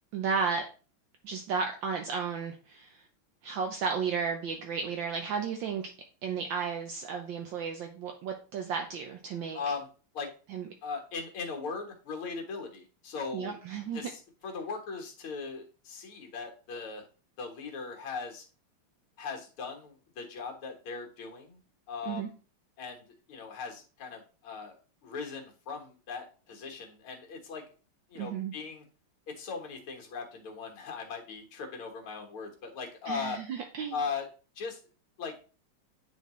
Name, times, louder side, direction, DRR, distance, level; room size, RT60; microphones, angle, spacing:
voice 1, 0.1-0.7 1.2-3.0 3.4-5.9 6.2-9.6 10.5-10.7 13.3-14.0 22.1-22.3 28.1-28.5 33.1-34.0, right 5 dB, 70° right, 3 dB, 1.3 m, -33 dB
voice 2, 9.5-9.9 10.1-10.3 10.8-13.6 13.9-17.0 17.4-18.4 19.2-21.6 21.9-22.3 22.8-24.8 25.0-27.6 28.1-28.9 29.3-33.4 33.9-34.3 34.6-34.8 35.2-35.3, left 5 dB, 75° left, 2 dB, 2.2 m, -39 dB
9.2 x 3.7 x 3.1 m, 0.36 s
omnidirectional pair, 2.4 m